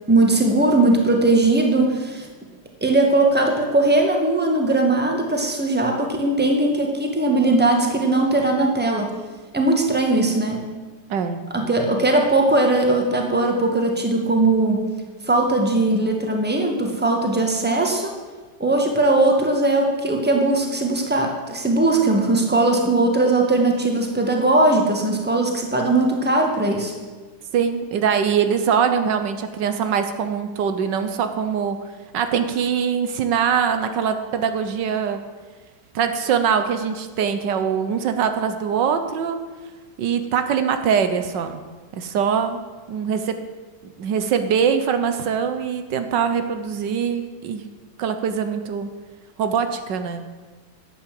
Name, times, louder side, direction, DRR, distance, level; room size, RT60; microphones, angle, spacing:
voice 1, 0.1-2.3 2.8-9.1 9.5-10.6 11.5-14.8 15.2-18.1 18.6-26.9, right 2 dB, 5° right, 2 dB, 1.6 m, -19 dB
voice 2, 27.5-31.8 32.1-35.2 35.9-39.4 40.0-41.6 41.9-42.6 42.9-43.4 44.0-47.7 48.0-48.9 49.4-50.2, right 7 dB, 80° right, 8 dB, 1.5 m, -22 dB
12.0 x 8.5 x 7.6 m, 1.4 s
omnidirectional pair, 1.9 m